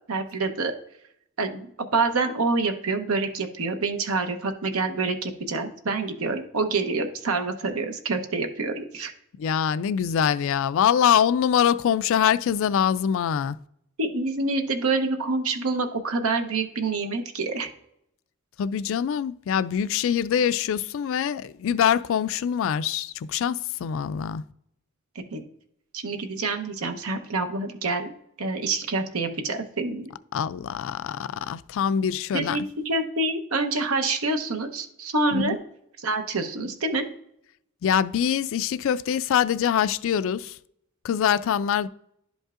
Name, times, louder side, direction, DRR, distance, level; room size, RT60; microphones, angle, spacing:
voice 1, 0.1-0.8 1.4-9.1 14.0-17.7 25.1-25.4 25.9-28.1 28.4-30.1 32.3-35.6 36.0-37.1, right 3 dB, 80° right, 0.9 m, -27 dB
voice 2, 9.4-13.6 18.6-24.4 30.3-32.6 35.3-35.6 37.8-40.6 41.0-41.9, left 8 dB, 65° left, 0.3 m, -24 dB
11.0 x 5.3 x 2.5 m
head